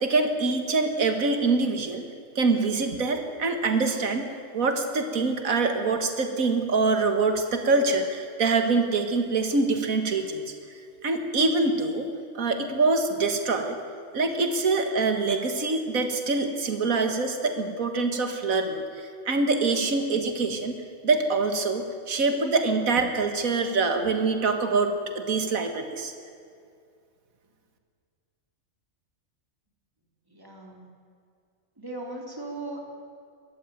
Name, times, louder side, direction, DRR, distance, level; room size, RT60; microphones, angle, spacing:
voice 1, 0.0-2.1 2.4-10.4 11.0-12.1 12.3-13.8 14.1-20.8 21.0-26.1, right 3 dB, 90° right, 6 dB, 2.1 m, -25 dB
voice 2, 30.3-30.8 31.8-32.8, right 2 dB, 15° right, 0 dB, 3.4 m, -38 dB
23.0 x 14.0 x 9.0 m, 2.3 s
omnidirectional pair, 1.4 m